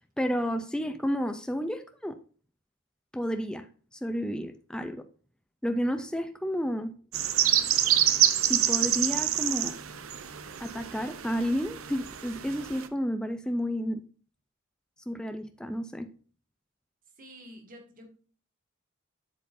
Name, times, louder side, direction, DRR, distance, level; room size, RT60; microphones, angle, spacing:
voice 1, 0.2-2.2 3.1-3.7 3.9-5.1 5.6-6.9 8.4-9.8 10.6-14.0 15.1-16.1, equal, 5° left, 0.4 m, -31 dB
sound 1, 7.1-12.9, right 11 dB, 90° right, 0.7 m, -27 dB
voice 2, 17.2-18.1, equal, 40° right, 1.8 m, -48 dB
8.0 x 7.5 x 2.6 m
head